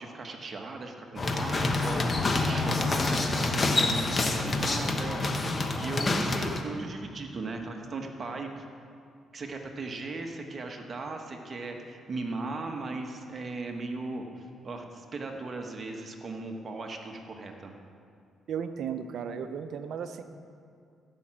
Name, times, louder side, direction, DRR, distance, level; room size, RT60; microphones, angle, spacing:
voice 1, 0.0-8.6 9.3-17.7, right 3 dB, 40° right, 3 dB, 1.3 m, -38 dB
sound 1, 1.2-6.6, left 2 dB, 30° left, 1.1 m, -27 dB
voice 2, 18.5-20.2, right 7 dB, 65° right, 8 dB, 0.7 m, -35 dB
15.5 x 5.9 x 7.6 m, 2.3 s
cardioid pair, 90°, 0 cm